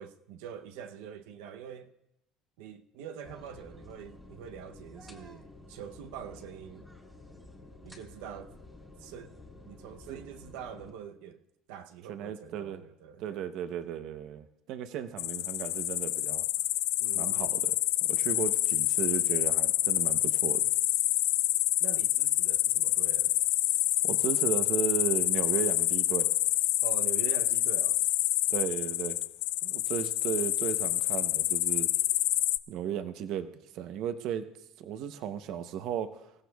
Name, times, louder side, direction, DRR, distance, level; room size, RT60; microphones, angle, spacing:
voice 1, 0.0-1.9 2.6-6.9 7.8-8.5 9.0-9.4 9.6-11.4 11.7-13.5 17.0-17.6 21.8-23.4 26.8-28.0, right 8 dB, 85° right, 0.7 m, -44 dB
sound 1, 3.2-10.9, left 2 dB, ahead, 1.6 m, -51 dB
voice 2, 12.1-12.8 13.2-16.5 17.2-17.8 18.1-20.6 24.0-26.3 28.5-29.2 29.6-31.9 32.7-33.5 33.7-34.5 34.8-36.2, right 9 dB, 50° right, 0.8 m, -35 dB
sound 2, 15.2-32.6, left 16 dB, 70° left, 0.4 m, -27 dB
26.0 x 15.5 x 2.3 m
cardioid pair, 165°, 0 cm